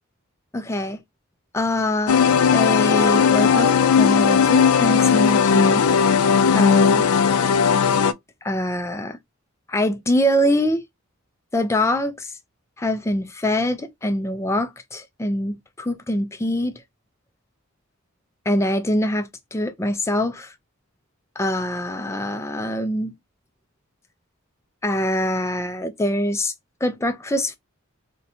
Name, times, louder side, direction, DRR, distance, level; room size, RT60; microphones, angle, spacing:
voice 1, 0.5-1.0 1.5-2.2 2.5-5.9 6.5-7.1 8.4-9.2 9.7-10.8 11.5-12.4 12.8-16.8 18.5-20.5 21.4-23.2 24.8-26.5 26.8-27.6, left 1 dB, 15° left, 0.4 m, -24 dB
sound 1, 2.1-8.1, left 6 dB, 85° left, 0.3 m, -17 dB
4.0 x 2.2 x 2.7 m
head